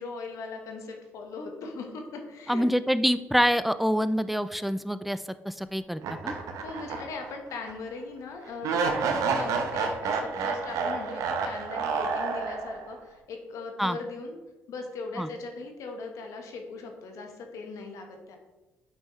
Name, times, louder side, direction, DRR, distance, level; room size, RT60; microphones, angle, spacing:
voice 1, 0.0-2.7 6.6-14.4 14.7-18.4, left 3 dB, 70° left, 3 dB, 1.2 m, -39 dB
voice 2, 2.5-6.3 13.8-14.0 15.2-15.3, equal, ahead, 13 dB, 0.4 m, -26 dB
sound 1, 6.0-7.3 7.7-7.8 8.6-12.9, right 5 dB, 75° right, 0.9 m, -29 dB
8.1 x 5.5 x 3.1 m, 1.1 s
supercardioid pair, 60°, 6 cm